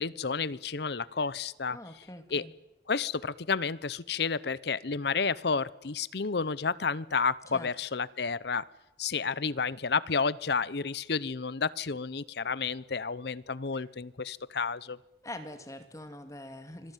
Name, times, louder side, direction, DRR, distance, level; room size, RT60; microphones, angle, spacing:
voice 1, 0.0-1.8 2.3-2.4 2.9-8.6 9.0-15.0, left 5 dB, 60° left, 20 dB, 0.8 m, -31 dB
voice 2, 1.7-2.5 7.5-7.7 13.7-13.8 15.2-16.9, left 1 dB, 20° left, 8 dB, 2.3 m, -44 dB
25.5 x 18.5 x 9.2 m, 0.94 s
head